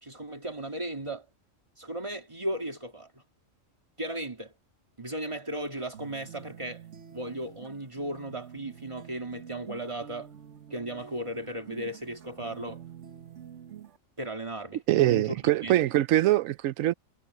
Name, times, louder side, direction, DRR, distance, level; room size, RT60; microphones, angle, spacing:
voice 1, 0.0-1.3 1.8-3.2 4.0-4.5 5.0-6.8 7.1-10.3 10.7-12.8 14.2-15.3 15.6-15.8, right 1 dB, 25° right, 2.4 m, -36 dB
sound 1, 5.9-14.0, right 9 dB, 65° right, 1.5 m, -47 dB
voice 2, 14.9-16.9, right 14 dB, 85° right, 1.0 m, -23 dB
omnidirectional pair, 1.3 m